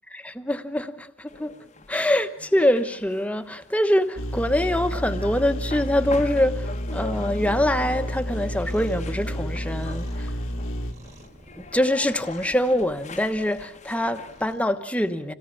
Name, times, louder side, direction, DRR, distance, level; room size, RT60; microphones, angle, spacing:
voice 1, 0.1-1.5 1.9-10.3 11.7-15.3, left 1 dB, 5° left, 1.1 m, -24 dB
sound 1, 1.3-14.5, left 4 dB, 35° left, 1.0 m, -43 dB
sound 2, 4.1-10.9, equal, 90° left, 1.8 m, -30 dB
Cat, 8.0-14.6, right 1 dB, 30° right, 2.8 m, -50 dB
27.5 x 17.5 x 8.4 m
head